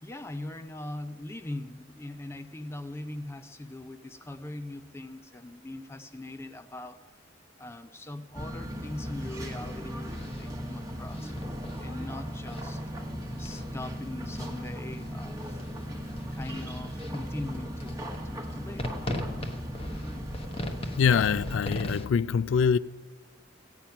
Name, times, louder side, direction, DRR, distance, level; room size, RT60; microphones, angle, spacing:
voice 1, 0.0-7.0 7.6-11.3 11.8-12.8 13.4-15.6 16.3-19.0, left 1 dB, 15° left, 0.4 m, -41 dB
sound 1, 8.3-21.6, equal, 15° right, 1.1 m, -37 dB
sound 2, 8.6-22.1, left 1 dB, 30° left, 0.9 m, -41 dB
voice 2, 21.0-22.8, left 6 dB, 90° left, 0.3 m, -24 dB
16.0 x 9.0 x 5.6 m
head